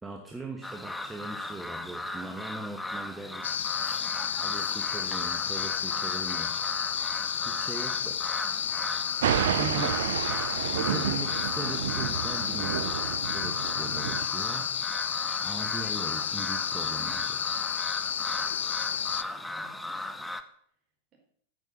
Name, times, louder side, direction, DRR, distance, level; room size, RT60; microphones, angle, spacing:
voice 1, 0.0-3.5 4.4-6.5 7.4-8.2 9.5-10.0 10.8-14.7 15.4-17.5, right 2 dB, 10° right, 3 dB, 1.2 m, -40 dB
sound 1, 0.6-20.4, left 2 dB, 5° left, 0.8 m, -37 dB
sound 2, 3.4-19.2, left 9 dB, 65° left, 0.4 m, -31 dB
Thunder, 9.2-14.2, right 10 dB, 60° right, 0.5 m, -31 dB
voice 2, 18.8-20.2, right 4 dB, 30° right, -1 dB, 4.3 m, -57 dB
9.1 x 8.5 x 6.3 m, 0.65 s
figure-of-eight pair, 90°, 0 cm